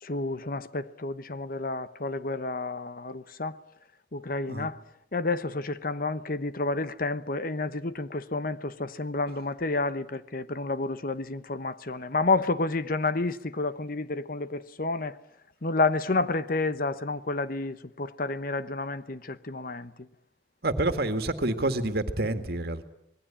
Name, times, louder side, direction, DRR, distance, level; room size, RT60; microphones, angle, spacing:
voice 1, 0.0-3.6 4.1-4.8 5.1-15.2 15.6-20.1, left 3 dB, 55° left, 1.0 m, -30 dB
voice 2, 20.6-22.8, right 2 dB, 60° right, 2.1 m, -28 dB
26.0 x 20.0 x 8.9 m
head